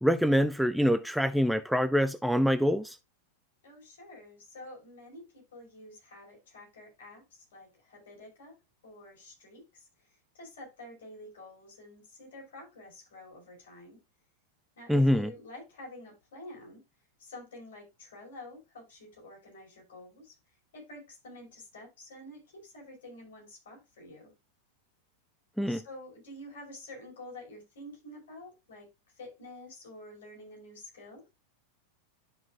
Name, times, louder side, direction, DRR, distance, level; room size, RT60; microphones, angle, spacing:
voice 1, 0.0-3.0 14.9-15.3 25.6-25.8, equal, ahead, 0.4 m, -25 dB
voice 2, 3.6-8.5 8.8-14.0 14.8-16.8 17.2-24.3 25.6-31.2, left 1 dB, 60° left, 5.0 m, -49 dB
12.0 x 5.3 x 2.4 m
figure-of-eight pair, 90°, 0 cm